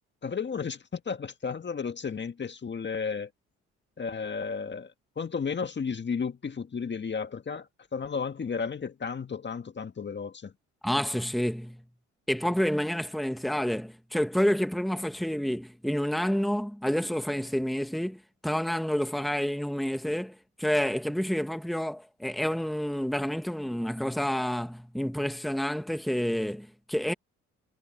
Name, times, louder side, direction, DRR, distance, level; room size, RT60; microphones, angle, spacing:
voice 1, 0.2-3.3 4.0-4.9 5.2-7.7 7.9-10.5, left 5 dB, 35° left, 1.7 m, -33 dB
voice 2, 10.8-11.8 12.3-27.1, equal, ahead, 1.7 m, -29 dB
supercardioid pair, 60°, 31 cm